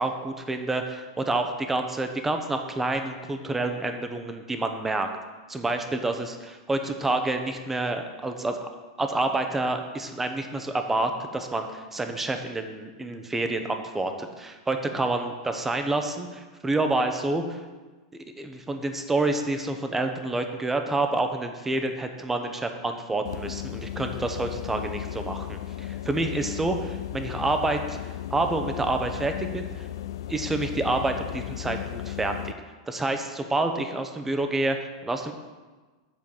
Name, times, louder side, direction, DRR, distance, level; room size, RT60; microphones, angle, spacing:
voice 1, 0.0-5.1 5.5-8.7 9.0-17.6 18.1-29.9 30.3-32.5 32.9-34.8 35.0-35.3, right 2 dB, 10° right, 6 dB, 0.8 m, -28 dB
sound 1, 23.2-32.5, left 12 dB, 75° left, 0.4 m, -35 dB
7.6 x 4.6 x 7.0 m, 1.3 s
hypercardioid pair, 125°, 2 cm